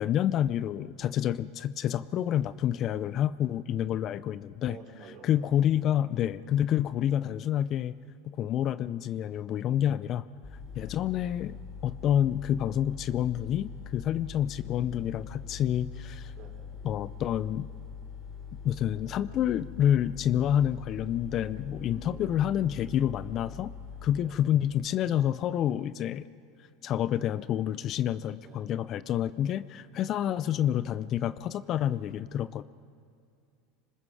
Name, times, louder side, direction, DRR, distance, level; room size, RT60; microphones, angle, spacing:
voice 1, 0.0-4.8 5.2-8.0 8.2-10.3 10.7-16.3 16.8-17.7 18.6-23.7 24.0-26.3 26.8-32.6, left 10 dB, 45° left, 16 dB, 0.5 m, -28 dB
voice 2, 4.6-5.6 10.7-11.0 16.4-16.7 21.7-22.8 24.2-24.5 28.4-28.7 31.7-32.0, right 5 dB, 50° right, 0 dB, 4.4 m, -51 dB
sound 1, 10.4-24.2, left 6 dB, 25° left, 4.0 m, -43 dB
26.0 x 20.5 x 4.9 m, 2.3 s
hypercardioid pair, 105°, 0 cm